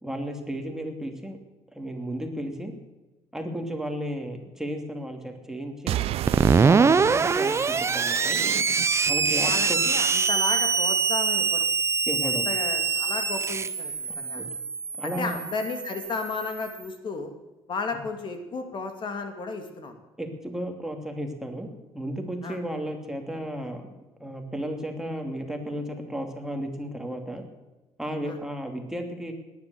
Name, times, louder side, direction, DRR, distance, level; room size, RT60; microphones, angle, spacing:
voice 1, 0.0-1.4 1.7-2.7 3.3-6.0 6.6-8.4 9.1-9.8 12.1-12.5 14.2-14.4 15.0-15.4 20.2-21.7 21.9-23.8 24.2-27.4 28.0-29.3, equal, 5° right, 3 dB, 2.7 m, -33 dB
sound 1, 5.9-9.1, right 13 dB, 70° right, 0.5 m, -33 dB
Screech, 6.3-16.7, right 5 dB, 25° right, 0.6 m, -24 dB
voice 2, 9.4-11.7 12.2-14.4 15.0-17.3 17.7-20.0 22.4-22.6 28.3-28.4, left 4 dB, 50° left, 6 dB, 2.5 m, -33 dB
18.0 x 10.5 x 7.0 m, 1.1 s
cardioid pair, 115°, 11 cm